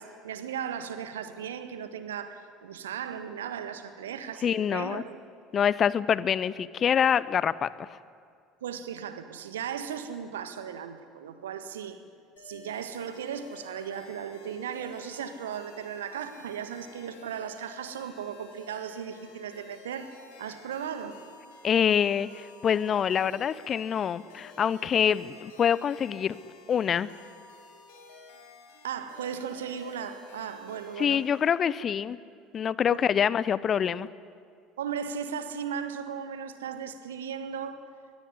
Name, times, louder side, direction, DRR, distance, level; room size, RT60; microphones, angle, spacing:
voice 1, 0.0-5.2 8.6-12.0 12.4-21.2 28.8-31.2 32.9-33.1 34.8-37.8, right 8 dB, 70° right, 10 dB, 1.6 m, -36 dB
voice 2, 4.4-5.0 5.5-8.0 21.6-26.4 26.7-27.1 31.0-32.2 32.5-34.1, left 8 dB, 35° left, 19 dB, 0.7 m, -26 dB
sound 1, 12.4-31.5, left 4 dB, 65° left, 4.9 m, -52 dB
21.5 x 21.5 x 9.9 m, 2.2 s
figure-of-eight pair, 65°, 0 cm